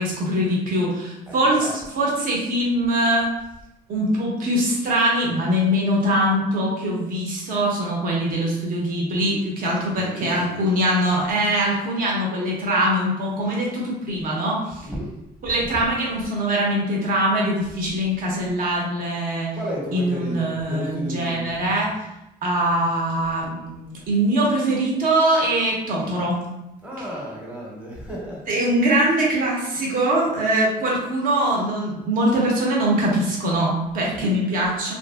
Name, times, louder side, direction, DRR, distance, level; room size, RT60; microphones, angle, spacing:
voice 1, 0.0-3.3 3.9-14.8 15.4-19.5 19.9-21.9 22.4-26.4 27.0-27.1 28.5-34.9, right 1 dB, 55° right, -3 dB, 0.9 m, -22 dB
voice 2, 1.3-1.9 9.9-10.7 14.8-15.1 15.5-15.9 19.5-21.5 26.8-28.5 34.0-34.4, equal, 5° right, -4 dB, 0.9 m, -33 dB
2.6 x 2.6 x 2.3 m, 0.91 s
cardioid pair, 110°, 17 cm